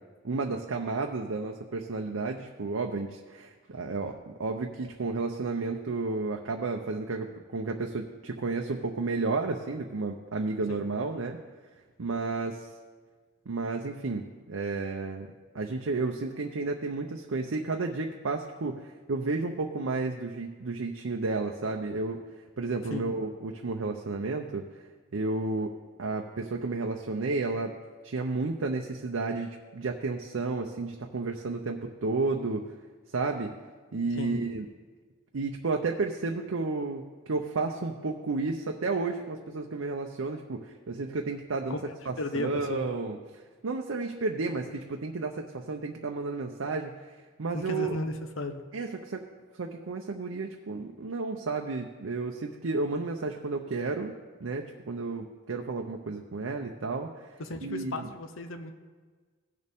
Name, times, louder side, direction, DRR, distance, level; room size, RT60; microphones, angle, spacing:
voice 1, 0.2-11.4 12.0-12.7 13.5-15.3 15.5-22.3 22.6-24.7 25.1-27.8 28.0-32.6 33.1-33.5 33.9-34.7 35.3-41.8 42.1-46.9 47.4-47.9 48.7-49.3 49.6-54.1 54.4-57.1 57.6-58.1, right 3 dB, 85° right, 3 dB, 0.7 m, -32 dB
voice 2, 41.7-42.9 47.5-48.6 57.4-58.7, left 2 dB, 90° left, 7 dB, 0.9 m, -35 dB
17.0 x 6.6 x 3.6 m, 1.4 s
head